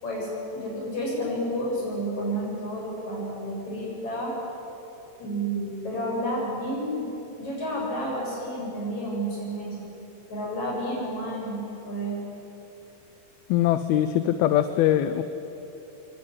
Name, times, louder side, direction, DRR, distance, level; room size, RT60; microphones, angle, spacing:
voice 1, 0.0-4.4 5.2-7.1 7.4-9.9 10.3-11.6 11.9-12.2, equal, 50° left, -3 dB, 8.9 m, -30 dB
voice 2, 13.5-15.2, left 12 dB, 90° left, 11 dB, 2.7 m, -22 dB
25.5 x 23.5 x 9.6 m, 3.0 s
omnidirectional pair, 4.3 m